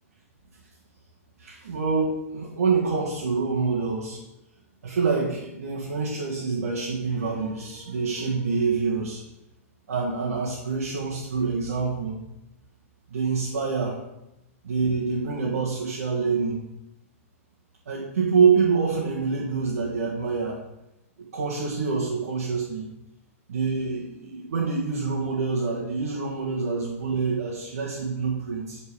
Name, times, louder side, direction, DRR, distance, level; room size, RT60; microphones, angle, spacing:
voice 1, 1.4-4.2 4.8-9.2 9.9-12.2 13.1-14.0 14.6-16.6 17.9-20.6 21.3-22.8 23.5-28.8, right 5 dB, 85° right, -6 dB, 1.8 m, -26 dB
8.7 x 4.4 x 4.9 m, 0.91 s
hypercardioid pair, 130°, 8 cm